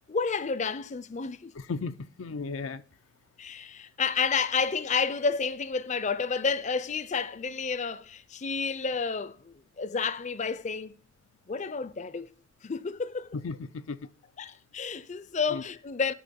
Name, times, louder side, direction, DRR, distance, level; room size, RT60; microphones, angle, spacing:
voice 1, 0.1-1.5 3.4-10.9 11.5-12.3 12.6-13.4 14.4-16.1, left 5 dB, 35° left, 0.5 m, -30 dB
voice 2, 1.6-2.8 13.3-14.0 15.5-15.6, left 4 dB, 85° left, 0.5 m, -35 dB
10.0 x 5.4 x 6.9 m
head